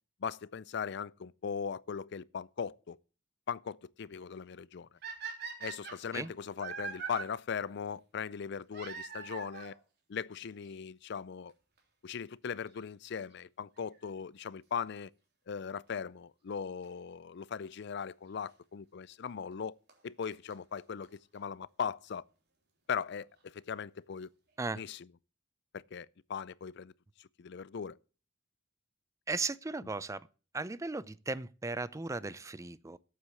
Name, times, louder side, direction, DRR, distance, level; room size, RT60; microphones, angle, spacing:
voice 1, 0.2-3.0 3.5-4.9 5.6-9.8 10.1-11.5 12.0-15.1 15.5-19.7 20.0-22.2 22.9-24.3 24.8-25.1 25.7-26.9 27.2-28.0, left 6 dB, 60° left, 0.4 m, -39 dB
sound 1, 5.0-7.2 8.7-9.8 10.7-10.8 11.5-11.6 11.8-11.9 13.8-14.0 16.8-16.9 18.0-18.1 19.5-19.6 19.9-20.0 20.2-20.3 20.5-20.6 20.8-20.9 21.0-21.1 21.4-21.5, right 5 dB, 55° right, 3.5 m, -42 dB
voice 2, 29.3-30.2 30.5-33.0, right 3 dB, 15° right, 0.4 m, -36 dB
8.5 x 7.8 x 8.2 m
head